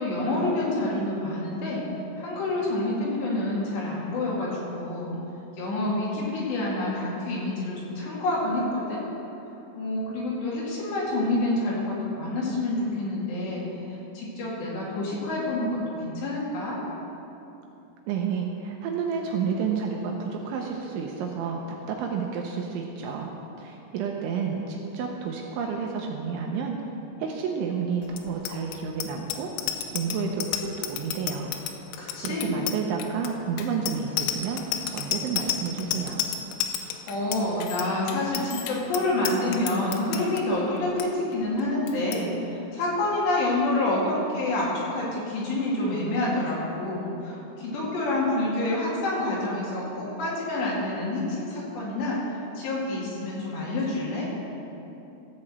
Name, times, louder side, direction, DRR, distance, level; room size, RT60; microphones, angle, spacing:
voice 1, 0.0-1.8 2.2-5.1 5.6-9.0 9.7-13.6 14.2-16.8 32.0-32.5 36.8-52.2 52.6-54.3, left 2 dB, 60° left, -5 dB, 4.1 m, -28 dB
voice 2, 18.1-21.6 21.9-23.3 23.6-26.8 27.2-29.5 29.9-31.5 32.2-34.6 34.9-36.2, right 6 dB, 80° right, 1 dB, 2.9 m, -30 dB
Bicycle bell, 28.1-40.4 40.8-41.1 41.3-41.6 41.9-42.2, left 10 dB, 80° left, 3.0 m, -32 dB
14.5 x 5.9 x 7.7 m, 2.9 s
omnidirectional pair, 6.0 m